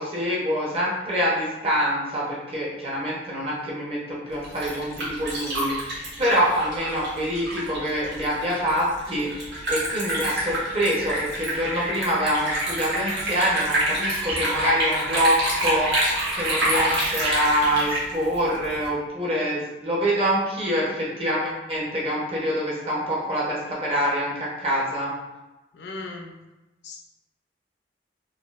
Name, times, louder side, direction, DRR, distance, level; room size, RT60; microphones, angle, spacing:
voice 1, 0.0-25.1, equal, 35° right, -6 dB, 0.8 m, -25 dB
Liquid, 4.3-18.9, right 1 dB, 85° right, 1.1 m, -27 dB
voice 2, 25.7-26.4 26.8-27.0, left 3 dB, 75° left, 2 dB, 0.4 m, -38 dB
3.6 x 2.3 x 2.4 m, 1.0 s
head